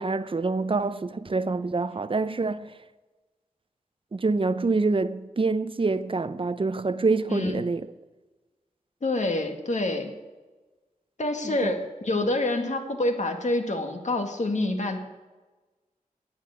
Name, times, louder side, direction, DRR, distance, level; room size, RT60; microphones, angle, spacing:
voice 1, 0.0-2.7 4.1-7.9 11.4-11.7, right 3 dB, 40° right, 0.7 m, -26 dB
voice 2, 7.3-7.6 9.0-10.1 11.2-15.0, left 2 dB, 60° left, 1.9 m, -27 dB
9.7 x 9.7 x 8.3 m
wide cardioid pair, 80°, 14 cm